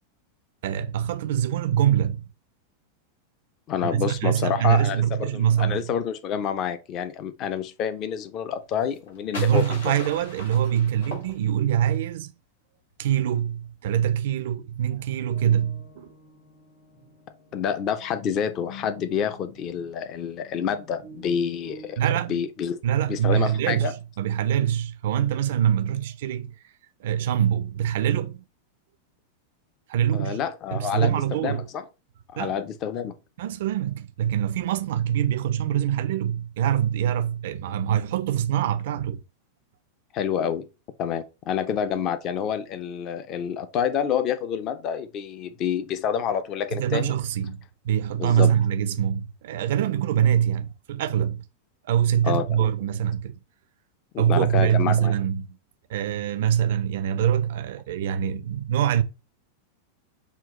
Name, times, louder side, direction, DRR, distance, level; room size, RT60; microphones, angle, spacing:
voice 1, 0.6-2.2 3.8-5.9 9.4-12.3 13.0-16.1 22.0-22.4 22.8-26.5 27.0-28.4 29.9-30.4 30.7-31.6 32.4-32.6 33.4-39.2 46.7-51.4 51.9-53.4 54.2-55.6 55.9-59.0, right 10 dB, 55° right, 0.4 m, -24 dB
voice 2, 3.7-10.0 17.5-22.0 22.3-22.8 23.1-23.9 30.1-31.8 32.3-33.2 40.1-40.7 41.0-47.2 48.2-48.5 52.2-52.7 54.1-55.1, left 8 dB, 35° left, 0.6 m, -28 dB
sound 1, 8.8-11.9, left 2 dB, 65° left, 2.3 m, -40 dB
sound 2, 15.3-21.9, left 2 dB, 90° left, 2.5 m, -47 dB
5.7 x 2.4 x 3.7 m
figure-of-eight pair, 90°, 0 cm